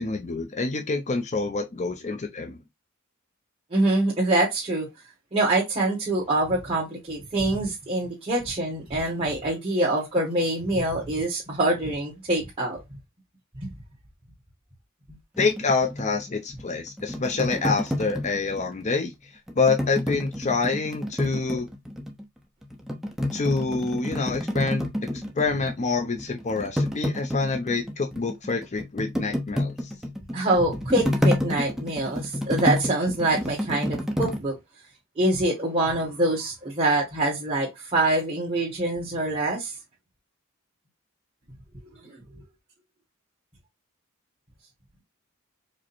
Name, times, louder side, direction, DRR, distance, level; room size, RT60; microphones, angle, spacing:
voice 1, 0.0-2.6 15.4-19.1 19.6-21.7 23.3-25.1 25.3-29.9, left 4 dB, 35° left, 0.6 m, -27 dB
voice 2, 3.7-4.9 5.3-12.8 13.6-13.7 30.3-34.5 35.2-39.7 42.1-42.2, right 1 dB, 30° right, 1.7 m, -25 dB
sound 1, 15.4-18.8 19.5-22.2 22.6-25.9 26.1-34.4, left 1 dB, ahead, 0.8 m, -29 dB
5.0 x 2.2 x 4.4 m
head